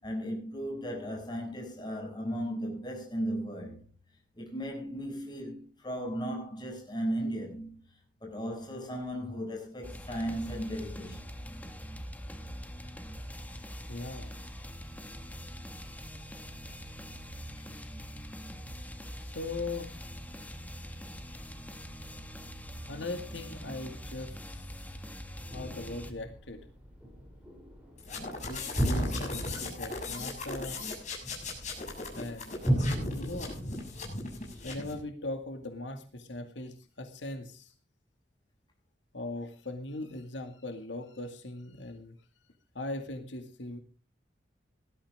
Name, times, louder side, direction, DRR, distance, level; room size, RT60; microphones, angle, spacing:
voice 1, 0.0-3.8 4.4-7.8 8.2-11.2, equal, 25° left, 6.9 m, -36 dB
sound 1, 9.8-26.1, equal, 10° left, 1.8 m, -43 dB
voice 2, 13.9-14.3 19.2-19.9 22.9-25.0 25.5-26.6 28.5-30.8 32.1-32.8 33.1-33.7 34.6-37.7 39.1-42.1 42.7-43.8, left 2 dB, 85° left, 2.2 m, -40 dB
sound 2, 25.5-34.9, equal, 5° right, 7.0 m, -35 dB
sound 3, 28.0-35.0, left 3 dB, 40° left, 6.9 m, -39 dB
19.0 x 13.0 x 3.6 m
head